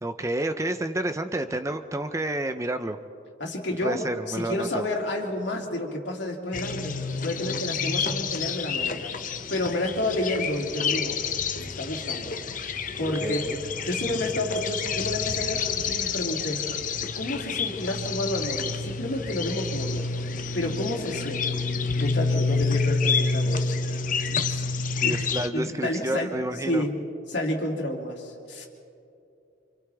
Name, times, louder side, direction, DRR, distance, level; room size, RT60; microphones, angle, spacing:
voice 1, 0.0-3.0 3.8-4.9 13.2-13.6 25.0-26.8, right 1 dB, 15° right, 8 dB, 0.6 m, -29 dB
voice 2, 3.4-9.1 9.5-11.2 11.6-12.4 13.0-13.4 13.8-16.7 17.2-20.1 20.5-21.6 22.0-23.9 24.5-24.6 25.0-25.2 25.5-26.3 26.6-27.0 27.3-28.7, left 1 dB, 70° left, 0 dB, 2.9 m, -30 dB
sound 1, 6.5-25.5, left 5 dB, 45° left, 0.8 m, -29 dB
29.0 x 26.5 x 3.5 m, 2.7 s
head